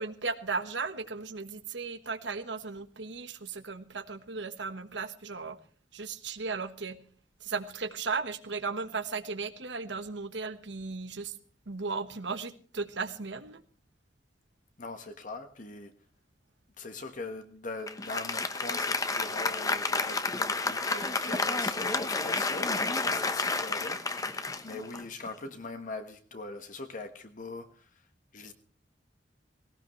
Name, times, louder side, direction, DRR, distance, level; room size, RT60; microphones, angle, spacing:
voice 1, 0.0-5.6 5.9-7.0 7.4-11.3 11.7-13.6, right 4 dB, 85° right, 1.3 m, -36 dB
voice 2, 14.8-15.9 16.8-27.9 28.3-28.5, left 3 dB, 45° left, 1.3 m, -41 dB
Applause, 17.9-25.5, left 3 dB, 20° left, 1.0 m, -30 dB
18.0 x 18.0 x 3.2 m
head